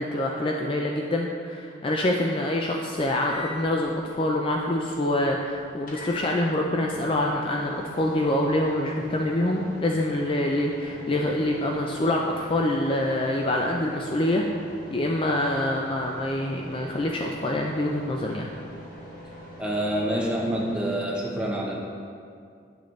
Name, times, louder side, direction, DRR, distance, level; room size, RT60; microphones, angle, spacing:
voice 1, 0.0-18.5, left 1 dB, 25° left, 0 dB, 0.4 m, -26 dB
sound 1, 2.9-21.0, left 1 dB, 45° left, 1.2 m, -43 dB
voice 2, 19.6-21.8, right 1 dB, 5° right, -3 dB, 0.8 m, -27 dB
8.4 x 6.4 x 3.1 m, 2.3 s
head